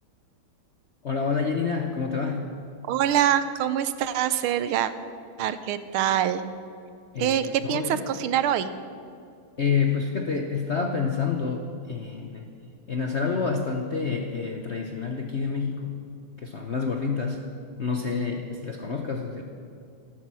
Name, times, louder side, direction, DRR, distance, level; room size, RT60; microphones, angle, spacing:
voice 1, 1.0-2.6 7.1-8.0 9.6-12.5 12.9-16.0 16.4-17.5 17.8-19.4, left 5 dB, 55° left, 3 dB, 0.7 m, -28 dB
voice 2, 2.9-4.9 5.4-6.4 7.2-8.7, right 10 dB, 80° right, 13 dB, 1.6 m, -24 dB
13.5 x 13.0 x 6.2 m, 2.5 s
omnidirectional pair, 2.3 m